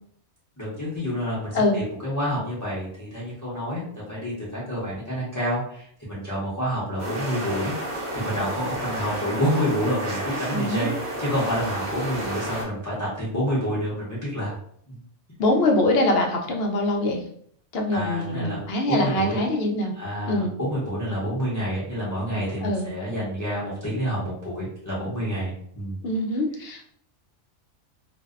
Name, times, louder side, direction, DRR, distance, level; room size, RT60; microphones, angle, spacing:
voice 1, 0.6-14.5 14.9-15.0 17.9-19.4 19.9-26.0 26.5-26.6, equal, 20° left, -9 dB, 0.6 m, -28 dB
sound 1, 7.0-12.6, right 1 dB, 45° right, 0.8 m, -31 dB
voice 2, 10.5-10.9 15.4-17.2 17.7-19.9 20.3-20.6 22.6-22.9 26.0-26.9, left 1 dB, 65° left, 1 dB, 0.7 m, -23 dB
2.6 x 2.1 x 2.3 m, 0.64 s
omnidirectional pair, 1.2 m